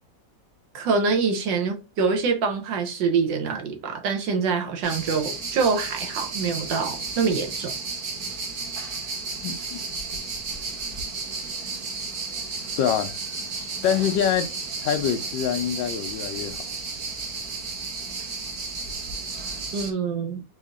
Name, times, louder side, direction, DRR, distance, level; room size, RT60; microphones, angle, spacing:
voice 1, 0.7-7.7 19.7-20.4, right 5 dB, 75° right, 1.6 m, -25 dB
sound 1, 4.8-19.9, right 4 dB, 60° right, 1.3 m, -33 dB
voice 2, 9.4-9.8 10.1-10.2 12.8-13.1 13.8-14.5 14.8-16.6, left 9 dB, 80° left, 1.3 m, -25 dB
4.9 x 2.7 x 2.4 m
omnidirectional pair, 2.0 m